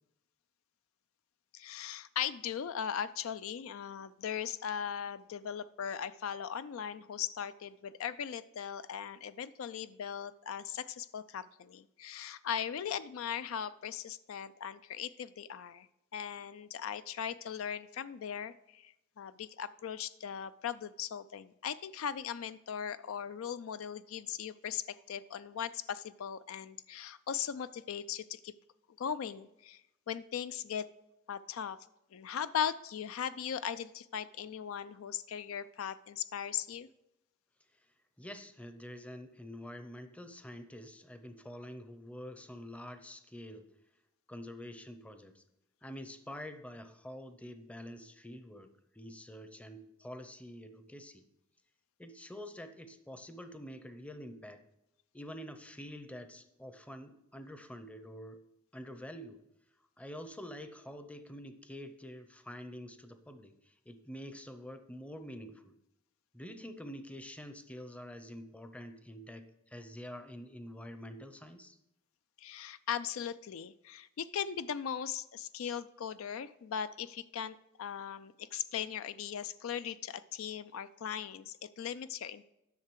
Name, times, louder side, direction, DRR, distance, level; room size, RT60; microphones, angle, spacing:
voice 1, 1.5-15.9 16.1-28.5 29.0-29.8 30.1-30.9 31.3-31.8 32.1-36.9 72.4-82.4, left 8 dB, 70° left, 14 dB, 0.4 m, -39 dB
voice 2, 38.2-43.8 44.3-45.4 45.8-51.2 52.0-54.6 55.1-58.4 58.7-59.5 60.0-65.7 66.3-71.8, equal, 5° left, 9 dB, 0.6 m, -47 dB
10.5 x 6.7 x 4.6 m, 0.87 s
head